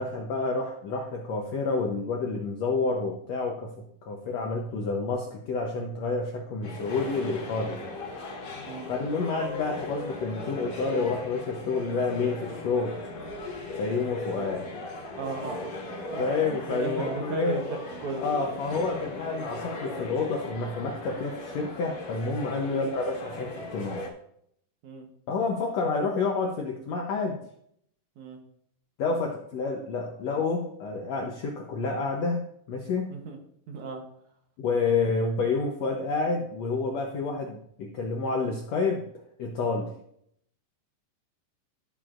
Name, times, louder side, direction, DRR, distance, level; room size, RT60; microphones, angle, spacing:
voice 1, 0.0-7.9 8.9-12.9 13.8-14.7 16.2-17.6 18.2-24.0 25.3-27.4 29.0-32.4 32.7-33.1 34.6-39.1 39.4-39.9, left 4 dB, 75° left, 1 dB, 1.6 m, -29 dB
sound 1, 6.6-24.1, left 2 dB, 55° left, 2.6 m, -38 dB
voice 2, 15.2-18.5 22.6-22.9 24.8-25.1 28.2-28.4 33.1-33.4 33.7-34.0, right 4 dB, 65° right, 3 dB, 2.2 m, -36 dB
14.0 x 7.0 x 2.5 m, 0.69 s
omnidirectional pair, 4.1 m